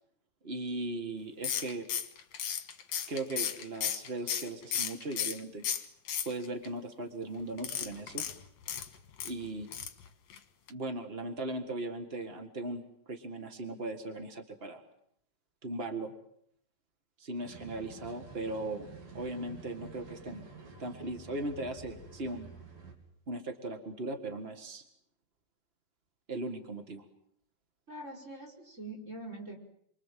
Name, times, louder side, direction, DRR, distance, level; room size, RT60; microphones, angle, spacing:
voice 1, 0.4-1.8 3.1-5.6 6.2-8.2 9.2-9.7 10.7-12.8 13.1-14.8 15.6-16.1 17.2-18.9 19.1-20.4 20.8-22.5 23.3-24.8 26.3-27.0, right 2 dB, 35° right, 6 dB, 0.9 m, -38 dB
sound 1, 1.4-5.4 5.6-6.7 7.6-9.3 9.7-10.0 10.3-10.4 10.7-10.8, left 9 dB, 60° left, 2.6 m, -34 dB
sound 2, 17.4-22.9, right 4 dB, 75° right, 5.2 m, -50 dB
voice 2, 27.9-29.6, right 2 dB, 20° right, 3 dB, 5.4 m, -44 dB
28.5 x 24.0 x 7.6 m, 0.71 s
omnidirectional pair, 4.0 m